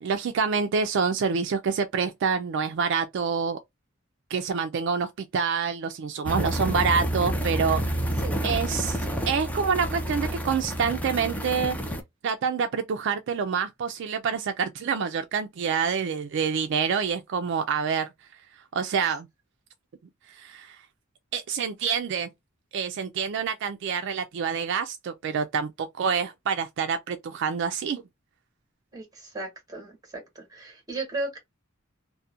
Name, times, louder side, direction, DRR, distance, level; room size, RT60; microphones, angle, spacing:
voice 1, 0.0-3.6 4.3-7.8 8.4-9.0 9.3-11.8 12.2-18.1 18.7-19.3 20.3-20.8 21.3-22.3 22.7-28.0, right 6 dB, 60° right, 0.3 m, -27 dB
sound 1, 6.3-12.0, right 1 dB, 5° left, 0.4 m, -29 dB
voice 2, 28.9-31.4, right 2 dB, 20° right, 1.3 m, -36 dB
2.7 x 2.1 x 2.3 m
head